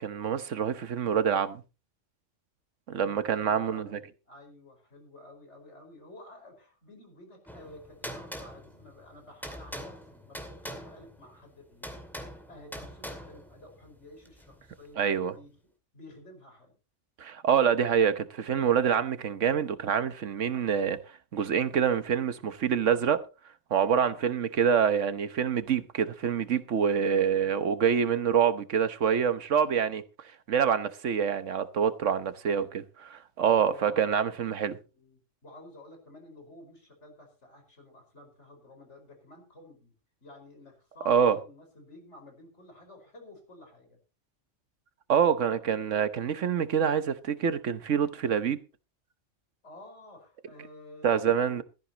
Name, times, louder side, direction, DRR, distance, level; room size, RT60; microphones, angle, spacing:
voice 1, 0.0-1.6 2.9-3.9 15.0-15.3 17.2-21.0 21.3-23.2 23.7-30.0 30.5-34.7 41.1-41.4 45.1-48.6 51.0-51.6, right 7 dB, 80° right, 1.4 m, -26 dB
voice 2, 2.9-15.6 15.9-16.7 23.8-24.2 27.3-27.9 32.2-32.5 33.5-34.5 34.9-39.9 40.2-44.0 49.6-51.6, left 2 dB, 70° left, 5.4 m, -51 dB
sound 1, 7.5-14.9, equal, ahead, 2.4 m, -43 dB
16.5 x 14.0 x 2.9 m
omnidirectional pair, 1.3 m